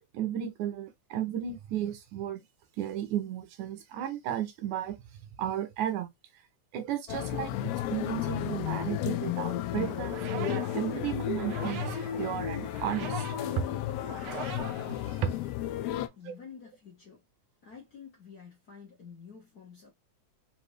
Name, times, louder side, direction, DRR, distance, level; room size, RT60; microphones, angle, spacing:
voice 1, 0.0-2.4 2.8-5.0 5.4-6.1 6.7-13.3 14.9-15.3, right 10 dB, 85° right, 2.3 m, -34 dB
sound 1, 7.1-16.1, left 12 dB, 85° left, 1.4 m, -33 dB
sound 2, 9.8-15.6, right 6 dB, 70° right, 1.3 m, -43 dB
voice 2, 15.9-17.2 17.6-19.9, left 6 dB, 50° left, 1.2 m, -49 dB
5.1 x 2.8 x 3.1 m
omnidirectional pair, 3.4 m